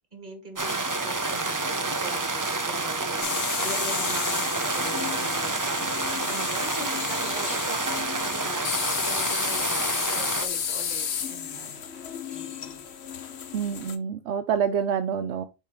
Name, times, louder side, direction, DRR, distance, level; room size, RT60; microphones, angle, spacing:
voice 1, 0.1-5.9 6.2-12.8, right 2 dB, 45° right, 2.0 m, -41 dB
sound 1, 0.6-10.5, right 3 dB, 20° right, 0.6 m, -29 dB
sound 2, 3.2-14.0, left 8 dB, 75° left, 1.1 m, -32 dB
voice 2, 13.5-15.4, right 7 dB, 80° right, 0.9 m, -27 dB
7.4 x 4.6 x 3.7 m
omnidirectional pair, 1.1 m